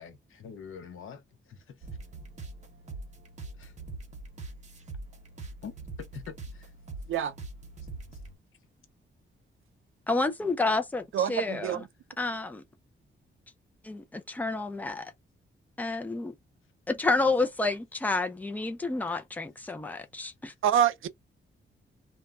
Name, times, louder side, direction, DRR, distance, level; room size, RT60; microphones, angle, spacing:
voice 1, 0.0-1.9 3.6-3.7 5.6-5.7 6.0-6.7, left 7 dB, 80° left, 0.7 m, -45 dB
sound 1, 1.8-8.3, right 3 dB, 35° right, 0.7 m, -43 dB
voice 2, 10.1-11.8 12.2-12.6 13.8-15.1 15.8-16.3 16.9-20.5, left 3 dB, 10° left, 0.4 m, -29 dB
voice 3, 11.1-11.9 20.6-21.1, right 9 dB, 75° right, 0.4 m, -26 dB
2.2 x 2.1 x 3.5 m
wide cardioid pair, 175°, 21 cm